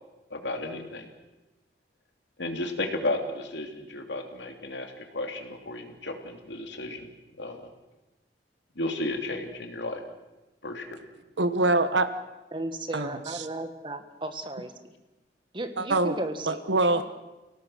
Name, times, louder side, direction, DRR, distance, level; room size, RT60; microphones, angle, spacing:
voice 1, 0.3-1.1 2.4-7.1 7.4-7.6 8.8-10.0 10.6-10.8, left 2 dB, 90° left, 4 dB, 2.9 m, -33 dB
voice 2, 11.4-12.1 12.9-13.5 15.8-16.2 16.5-17.1, right 2 dB, 90° right, 11 dB, 1.2 m, -25 dB
voice 3, 12.5-14.9 15.5-16.6 16.9-17.0, right 1 dB, 30° right, 8 dB, 1.7 m, -35 dB
28.5 x 17.5 x 6.5 m, 1.1 s
head